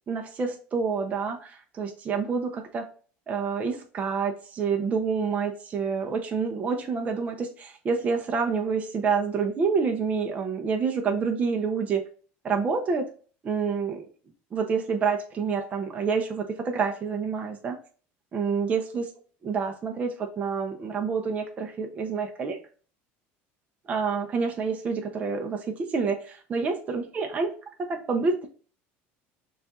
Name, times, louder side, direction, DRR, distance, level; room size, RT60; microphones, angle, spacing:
voice 1, 0.1-2.9 3.3-12.0 12.4-13.1 13.4-14.1 14.5-17.8 18.3-19.1 19.4-22.6 23.9-27.5 27.8-28.5, right 5 dB, 25° right, 4 dB, 0.5 m, -28 dB
6.5 x 2.4 x 2.3 m, 0.40 s
cardioid pair, 140°, 5 cm